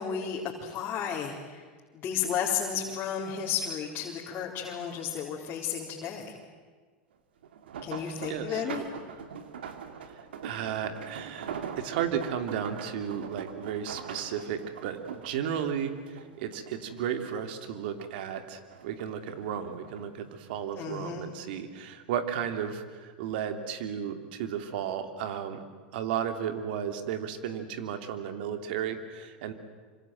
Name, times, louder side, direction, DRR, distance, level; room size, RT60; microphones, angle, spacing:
voice 1, 0.0-1.6 1.9-6.4 7.8-8.8 20.7-21.3, left 7 dB, 40° left, -3 dB, 4.2 m, -33 dB
sound 1, 7.4-17.0 17.4-18.3 18.7-20.0 20.8-21.1 21.5-21.6, right 7 dB, 85° right, 2.6 m, -42 dB
voice 2, 7.9-8.8 10.1-11.5 11.8-25.6 25.9-29.5, right 8 dB, 70° right, 7 dB, 3.1 m, -34 dB
27.0 x 26.0 x 7.8 m, 1.5 s
hypercardioid pair, 110°, 6 cm